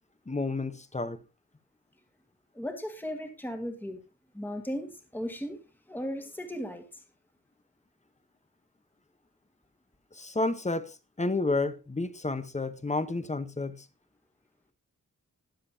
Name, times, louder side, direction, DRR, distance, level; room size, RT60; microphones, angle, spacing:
voice 1, 0.3-1.2 10.1-13.8, left 2 dB, 20° left, 1.0 m, -31 dB
voice 2, 2.5-4.0 4.3-5.6 5.9-7.0, equal, 5° left, 1.8 m, -36 dB
21.0 x 7.5 x 2.8 m
wide cardioid pair, 125°, 31 cm